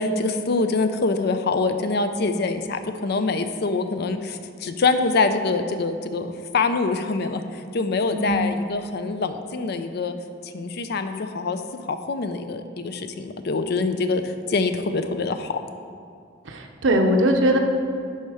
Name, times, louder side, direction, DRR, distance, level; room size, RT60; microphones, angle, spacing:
voice 1, 0.0-10.1 10.4-11.6 11.9-15.6, left 3 dB, 55° left, 8 dB, 0.5 m, -25 dB
voice 2, 16.4-17.6, right 1 dB, 85° right, 4 dB, 0.8 m, -20 dB
11.0 x 4.3 x 4.9 m, 2.3 s
head